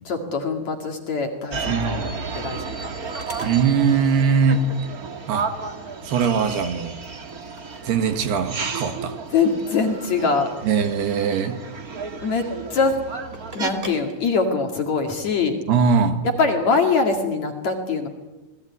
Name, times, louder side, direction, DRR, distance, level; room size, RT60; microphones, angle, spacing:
voice 1, 0.0-2.8 3.1-3.2 9.3-10.5 12.2-13.0 13.5-15.6 16.2-18.1, left 4 dB, 45° left, 4 dB, 3.0 m, -23 dB
sound 1, 1.5-13.7, right 4 dB, 55° right, 1.0 m, -33 dB
voice 2, 1.7-2.1 3.4-4.7 5.3-5.5 6.1-7.0 7.8-9.2 10.6-11.6 15.7-16.2, right 6 dB, 70° right, 8 dB, 3.6 m, -21 dB
sound 2, 2.0-15.2, right 2 dB, 15° right, 3.0 m, -46 dB
28.0 x 20.0 x 9.7 m, 1.1 s
omnidirectional pair, 5.0 m